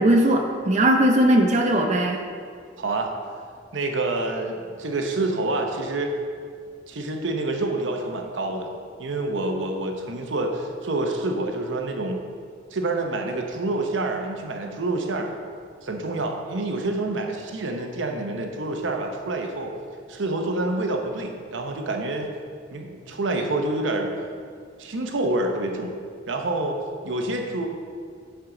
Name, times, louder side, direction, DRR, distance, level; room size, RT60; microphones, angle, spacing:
voice 1, 0.0-2.2, right 1 dB, 40° right, 2 dB, 0.6 m, -19 dB
voice 2, 2.8-3.1 3.7-6.1 6.9-8.7 9.0-12.2 12.7-15.3 15.8-19.7 20.1-22.3 22.7-24.1 24.8-25.9 26.3-26.8 27.0-27.7, right 2 dB, 80° right, 3 dB, 0.8 m, -27 dB
10.5 x 4.7 x 3.8 m, 2.2 s
head